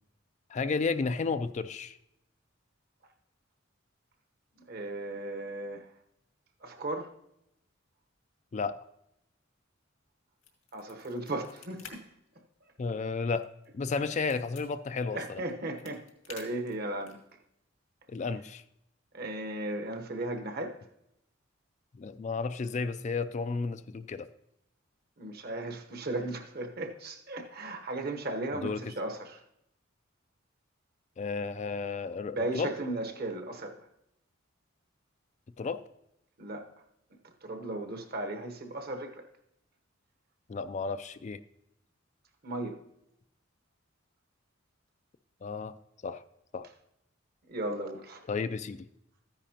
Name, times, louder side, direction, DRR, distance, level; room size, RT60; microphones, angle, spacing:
voice 1, 0.5-2.0 8.5-8.8 12.8-15.4 18.1-18.6 22.0-24.3 28.5-28.8 31.2-32.7 35.6-35.8 40.5-41.4 45.4-45.7 46.0-46.2 46.5-46.7 48.3-48.9, left 4 dB, 35° left, 0.3 m, -33 dB
voice 2, 4.7-5.9 6.6-7.1 10.7-12.1 15.1-17.2 19.1-20.8 25.2-29.4 32.3-33.8 36.4-36.7 37.4-39.3 42.4-42.8 47.5-48.2, right 2 dB, 50° right, 1.0 m, -36 dB
sound 1, 10.4-11.9 12.3-12.4 12.8-14.6 15.4-17.3, left 7 dB, 85° left, 2.0 m, -50 dB
13.5 x 10.0 x 2.9 m
head